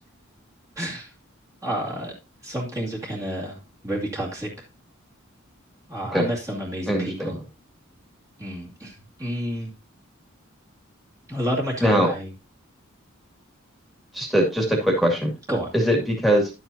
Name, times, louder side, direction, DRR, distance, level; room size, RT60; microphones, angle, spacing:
voice 1, 0.8-1.1 1.6-2.1 2.4-3.6 3.8-4.5 5.9-7.4 8.4-8.9 9.2-9.7 11.3-12.3 15.5-15.7, equal, 15° right, -3 dB, 2.2 m, -29 dB
voice 2, 6.9-7.3 11.8-12.1 14.1-15.3 15.7-16.5, equal, ahead, 1 dB, 2.2 m, -21 dB
11.0 x 7.9 x 2.7 m, 0.28 s
head